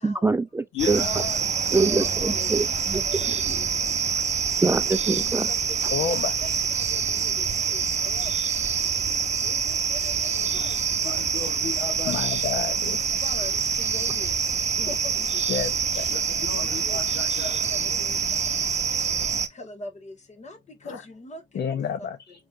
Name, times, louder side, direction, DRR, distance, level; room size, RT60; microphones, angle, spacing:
voice 1, 0.0-1.0 1.7-3.0 3.5-3.6 4.6-5.5, right 3 dB, 10° right, 0.4 m, -24 dB
voice 2, 0.7-3.0 10.1-10.7 11.0-12.3 15.9-18.0 18.3-18.5 20.8-21.0, left 6 dB, 80° left, 1.3 m, -36 dB
sound 1, 0.8-19.5, right 6 dB, 35° right, 0.7 m, -26 dB
voice 3, 1.7-2.5 2.9-3.6 5.1-5.6 6.1-7.3 7.7-8.3 9.4-10.7 12.8-14.3 14.8-15.6 16.5-17.2 17.5-18.2 19.6-20.6 20.8-21.6 22.0-22.1, left 2 dB, 35° left, 1.7 m, -42 dB
voice 4, 5.9-6.3 12.0-13.0 15.5-16.1 21.5-22.3, left 7 dB, 55° left, 0.7 m, -29 dB
5.4 x 3.3 x 2.6 m
cardioid pair, 90°, 20 cm